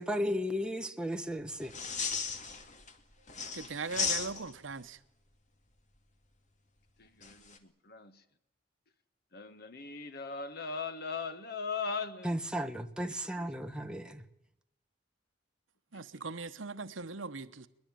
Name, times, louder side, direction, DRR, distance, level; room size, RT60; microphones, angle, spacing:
voice 1, 0.0-1.7 12.2-14.2, equal, 5° right, 1.5 m, -34 dB
sound 1, 1.6-2.9 3.3-4.7 7.2-7.6, left 5 dB, 40° left, 2.3 m, -35 dB
voice 2, 3.5-5.0 15.9-17.7, right 4 dB, 85° right, 1.1 m, -40 dB
voice 3, 7.0-8.2 9.3-12.4 13.1-13.5 15.9-16.0, left 5 dB, 55° left, 1.9 m, -39 dB
21.5 x 20.5 x 9.2 m
head